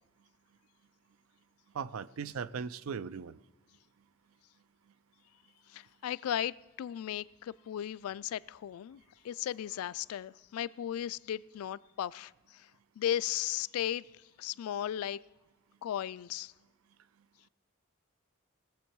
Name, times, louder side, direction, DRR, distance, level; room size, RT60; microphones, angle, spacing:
voice 1, 1.7-3.4, right 6 dB, 75° right, 0.4 m, -38 dB
voice 2, 5.7-12.7 13.0-14.1 14.4-15.2 15.8-16.5, left 11 dB, 80° left, 0.3 m, -36 dB
20.0 x 7.2 x 4.6 m
head